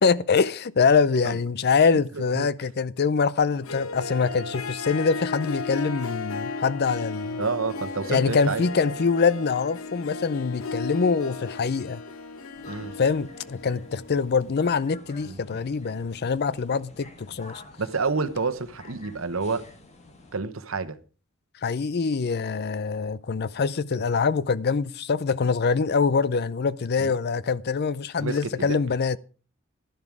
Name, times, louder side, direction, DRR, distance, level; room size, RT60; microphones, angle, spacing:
voice 1, 0.0-7.4 8.1-12.0 13.0-17.6 21.6-29.2, left 5 dB, 50° left, 0.5 m, -24 dB
Harp, 3.5-14.7, left 3 dB, 80° left, 1.0 m, -35 dB
voice 2, 7.4-8.6 12.7-12.9 15.2-15.4 17.8-19.7 20.3-21.0 27.0-27.1 28.2-28.8, right 4 dB, 70° right, 1.1 m, -29 dB
sound 1, 12.5-20.4, left 2 dB, 35° left, 1.7 m, -49 dB
12.0 x 11.0 x 4.8 m
head